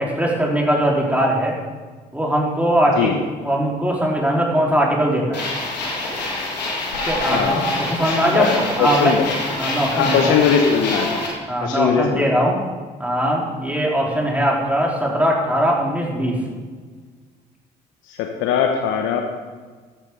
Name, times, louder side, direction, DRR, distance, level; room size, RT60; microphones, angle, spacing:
voice 1, 0.0-1.6 2.1-3.2 3.4-5.4 7.1-9.1 9.6-10.3 11.5-12.6 13.0-16.4, right 1 dB, 5° right, -3 dB, 4.0 m, -20 dB
sound 1, 5.3-11.3, left 2 dB, 85° left, 2.0 m, -25 dB
voice 2, 7.3-8.0 8.3-9.2 9.9-11.2 11.6-12.4 18.1-19.2, left 7 dB, 70° left, 4 dB, 1.0 m, -20 dB
13.5 x 11.5 x 3.8 m, 1.5 s
hypercardioid pair, 45°, 21 cm